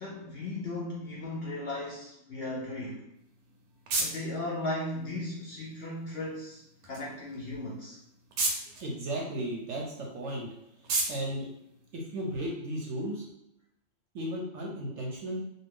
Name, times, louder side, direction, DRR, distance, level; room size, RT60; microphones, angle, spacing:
voice 1, 0.0-3.0 4.0-8.0, left 1 dB, 60° left, -4 dB, 0.6 m, -36 dB
sound 1, 3.1-12.5, right 3 dB, 90° right, 1.1 m, -38 dB
voice 2, 8.6-10.5 11.1-11.5 11.9-13.2 14.1-15.4, right 1 dB, 65° right, -2 dB, 0.8 m, -35 dB
2.6 x 2.2 x 3.4 m, 0.81 s
omnidirectional pair, 1.5 m